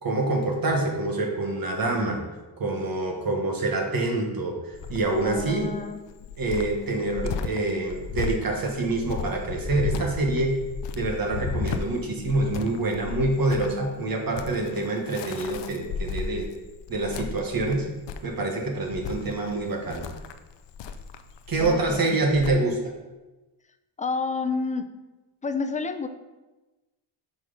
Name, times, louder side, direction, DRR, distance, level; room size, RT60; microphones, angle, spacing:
voice 1, 0.0-2.2 2.6-5.7 6.4-10.6 10.9-16.5 16.9-17.9 18.2-20.1 21.5-22.9, right 2 dB, 45° right, 1 dB, 1.5 m, -26 dB
Cricket, 4.7-22.5, left 5 dB, 60° left, 0.7 m, -35 dB
voice 2, 5.2-6.0 21.6-22.2 24.0-24.9 25.4-26.1, left 4 dB, 15° left, 9 dB, 0.5 m, -29 dB
7.0 x 4.2 x 5.5 m, 1.1 s
cardioid pair, 80°, 48 cm